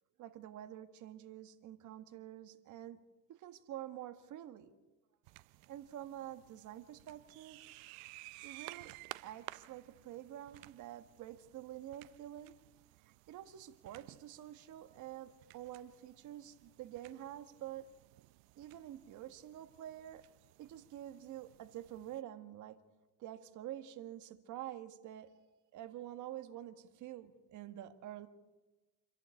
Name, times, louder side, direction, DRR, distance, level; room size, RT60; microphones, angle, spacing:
voice 1, 0.2-3.0 3.3-4.7 5.7-7.6 8.4-8.9 9.2-12.5 13.0-17.9 18.6-20.2 20.6-22.8 23.2-25.3 25.7-28.3, right 12 dB, 50° right, 9 dB, 1.8 m, -48 dB
sound 1, 5.2-22.2, right 21 dB, 70° right, 0.7 m, -56 dB
27.5 x 11.5 x 8.4 m, 1.2 s
supercardioid pair, 115°, 38 cm